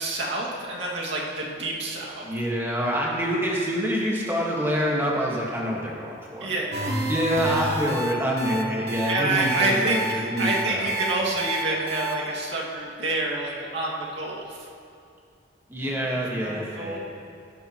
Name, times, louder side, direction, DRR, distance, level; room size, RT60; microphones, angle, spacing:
voice 1, 0.0-2.3 6.4-6.9 9.1-14.6 15.8-17.0, right 2 dB, 75° right, -4 dB, 2.2 m, -28 dB
voice 2, 2.2-6.5 7.1-10.9 15.7-17.0, equal, 10° right, -3 dB, 1.6 m, -26 dB
sound 1, 6.7-12.1, equal, 60° right, 1.2 m, -30 dB
16.0 x 12.0 x 3.1 m, 2.4 s
head